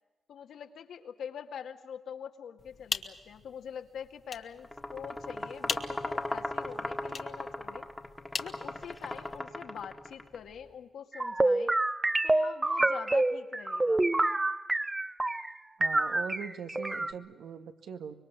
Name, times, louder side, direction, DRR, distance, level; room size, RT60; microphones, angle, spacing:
voice 1, 0.3-7.9 8.4-11.8 12.2-14.1, left 8 dB, 85° left, 5 dB, 2.1 m, -44 dB
sound 1, 2.6-9.4, left 5 dB, 40° left, 1.3 m, -42 dB
sound 2, 4.6-10.4, left 1 dB, 10° left, 1.6 m, -38 dB
sound 3, 11.1-15.5 15.8-17.1, right 2 dB, 15° right, 0.8 m, -27 dB
voice 2, 15.8-18.2, right 7 dB, 90° right, 7 dB, 1.9 m, -41 dB
25.0 x 23.5 x 7.5 m, 1.1 s
wide cardioid pair, 160°, 0 cm